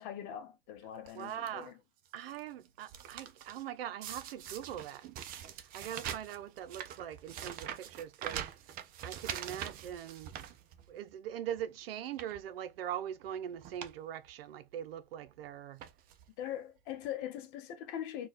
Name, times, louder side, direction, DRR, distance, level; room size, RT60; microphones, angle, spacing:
voice 1, 0.0-1.7 16.4-18.3, left 10 dB, 45° left, 1.1 m, -41 dB
sound 1, 1.1-1.5 2.1-2.4 2.7-3.6 4.0-11.1 11.5-11.6 12.1-12.4 13.2-13.4 13.6-14.0 14.3-14.4 15.3-15.4 15.8-16.3 17.0-17.1 17.3-17.4, right 10 dB, 30° right, 0.5 m, -44 dB
voice 2, 1.1-1.7 2.1-5.1 5.7-8.5 9.0-10.3 10.9-15.8, right 10 dB, 75° right, 0.7 m, -41 dB
3.9 x 2.4 x 2.4 m
hypercardioid pair, 120°, 30 cm